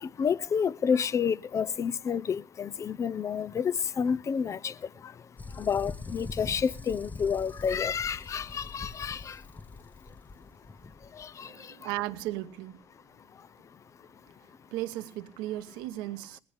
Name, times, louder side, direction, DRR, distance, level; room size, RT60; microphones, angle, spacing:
voice 1, 0.0-4.7 5.6-9.4 11.2-11.5, left 7 dB, 45° left, 0.7 m, -29 dB
sound 1, 5.4-11.2, left 3 dB, 20° left, 0.9 m, -43 dB
voice 2, 11.5-12.8 14.7-16.4, right 15 dB, 90° right, 1.1 m, -36 dB
19.0 x 17.0 x 3.4 m
supercardioid pair, 70°, 7 cm